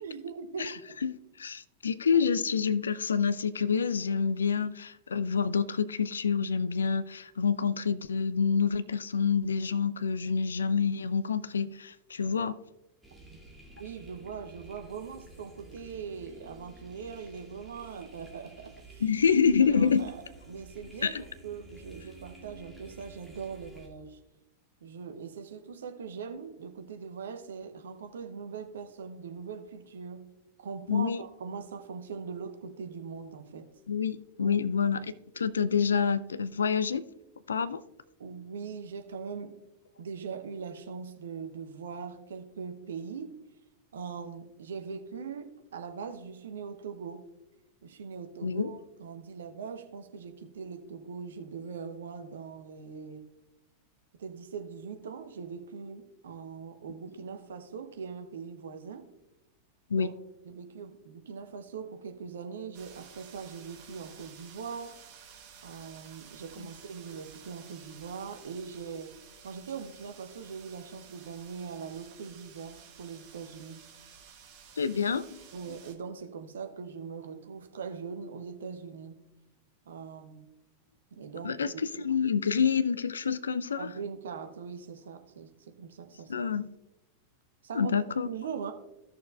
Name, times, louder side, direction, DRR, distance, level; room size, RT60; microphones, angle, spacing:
voice 1, 0.0-1.0 13.2-19.0 19.6-24.2 24.8-30.3 30.6-33.7 34.4-34.6 38.2-39.6 40.0-43.4 43.9-47.3 47.8-53.3 54.2-59.1 59.9-60.1 60.4-65.0 65.6-73.8 75.5-79.2 79.9-80.5 81.1-82.1 83.8-86.4 87.6-87.9 88.2-88.7, right 6 dB, 65° right, 0.9 m, -41 dB
voice 2, 1.0-12.6 19.0-20.1 21.0-21.2 30.9-31.2 33.9-37.0 37.5-37.8 48.4-48.7 59.9-60.1 74.8-75.4 81.4-81.7 82.0-83.9 86.3-86.7 87.7-88.3, left 6 dB, 70° left, 0.4 m, -27 dB
sound 1, 13.0-23.9, right 2 dB, 5° right, 2.0 m, -52 dB
sound 2, 62.7-75.9, right 7 dB, 40° right, 1.5 m, -53 dB
15.5 x 6.5 x 2.4 m
figure-of-eight pair, 90°, 0 cm